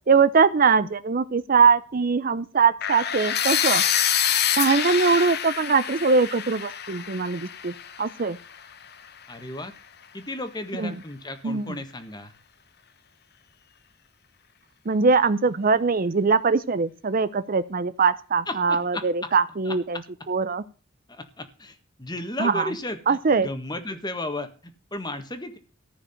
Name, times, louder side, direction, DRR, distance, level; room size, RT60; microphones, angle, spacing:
voice 1, 0.1-3.8 4.6-8.4 10.8-10.9 11.4-11.8 14.9-20.0 20.3-20.6 22.4-22.7 23.1-23.5, right 5 dB, 45° right, 15 dB, 0.6 m, -22 dB
sound 1, 2.8-8.7, left 9 dB, 55° left, 1.1 m, -26 dB
voice 2, 9.3-9.7 10.1-12.3 18.5-19.3 19.6-20.0 21.1-25.6, left 2 dB, 20° left, 8 dB, 1.6 m, -34 dB
14.5 x 5.0 x 9.0 m, 0.36 s
head